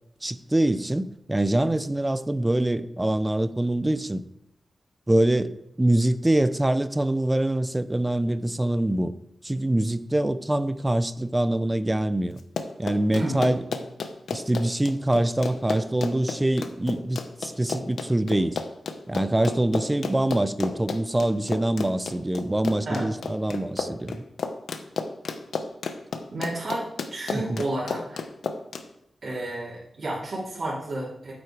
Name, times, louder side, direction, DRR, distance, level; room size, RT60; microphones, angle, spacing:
voice 1, 0.2-4.2 5.1-9.1 9.4-12.4 12.8-13.6 14.3-18.6 19.1-24.2 27.5-27.6, right 1 dB, 15° right, 0.5 m, -24 dB
Run, 12.4-28.8, left 5 dB, 80° left, 0.9 m, -32 dB
voice 2, 13.1-13.6 22.8-23.1 26.3-28.2 29.2-31.3, right 1 dB, 55° right, 3.3 m, -31 dB
9.3 x 7.8 x 4.8 m
wide cardioid pair, 135°, 0 cm